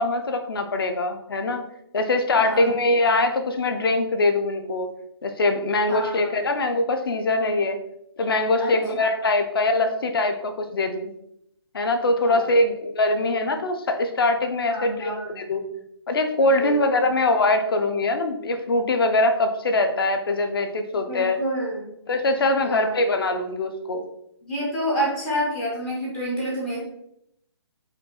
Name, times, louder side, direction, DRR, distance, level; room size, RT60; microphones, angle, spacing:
voice 1, 0.0-1.6 1.9-4.9 5.2-7.8 8.2-11.1 11.7-15.6 16.1-21.4 22.1-24.0, left 2 dB, 55° left, 7 dB, 0.6 m, -22 dB
voice 2, 2.4-2.7 5.9-6.4 8.6-9.1 12.2-12.5 14.7-15.6 16.6-17.1 21.1-22.0 22.6-23.0 24.4-26.8, equal, 5° left, -6 dB, 0.4 m, -29 dB
5.0 x 2.3 x 4.2 m, 0.77 s
hypercardioid pair, 170°, 14 cm